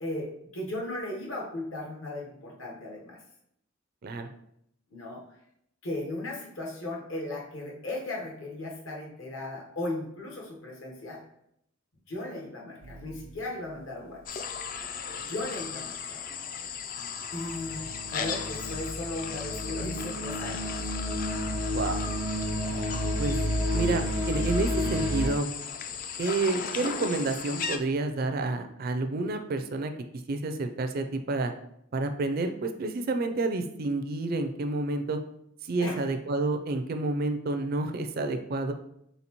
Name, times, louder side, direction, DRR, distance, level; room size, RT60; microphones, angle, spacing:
voice 1, 0.0-3.2 4.9-5.2 5.8-11.2 12.1-14.2 15.3-16.2 17.3-17.8 18.1-20.7 35.8-36.0, left 1 dB, 70° left, -2 dB, 1.1 m, -36 dB
sound 1, 12.8-13.6 17.3-25.3, equal, 80° right, 0.7 m, -31 dB
sound 2, 14.3-27.8, left 6 dB, 40° left, 0.3 m, -36 dB
voice 2, 23.7-25.5 26.2-29.9 30.3-31.5 31.9-35.2 35.6-38.7, right 2 dB, 45° right, 7 dB, 0.4 m, -29 dB
4.1 x 3.8 x 2.9 m, 0.74 s
head